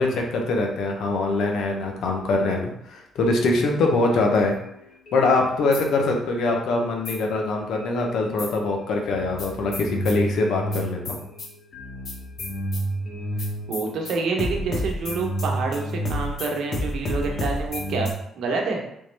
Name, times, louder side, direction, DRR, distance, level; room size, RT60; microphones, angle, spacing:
voice 1, 0.0-4.6 5.1-11.2, left 3 dB, 75° left, 1 dB, 0.8 m, -23 dB
sound 1, 4.5-6.6 7.0-8.6 9.1-18.1, equal, 50° left, 0.9 m, -30 dB
voice 2, 13.7-18.8, right 4 dB, 75° right, 1 dB, 0.8 m, -27 dB
3.7 x 3.0 x 3.2 m, 0.76 s
cardioid pair, 90°, 0 cm